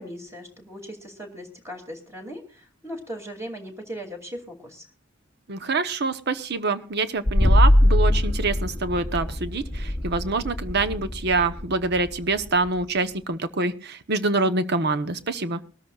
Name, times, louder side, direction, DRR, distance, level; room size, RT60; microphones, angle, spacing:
voice 1, 0.0-4.9, equal, 15° right, 2 dB, 2.7 m, -38 dB
voice 2, 5.5-15.6, right 3 dB, 55° right, 10 dB, 1.0 m, -25 dB
sound 1, 7.3-12.8, left 1 dB, 20° left, 0.9 m, -22 dB
22.0 x 13.5 x 2.4 m, 0.40 s
head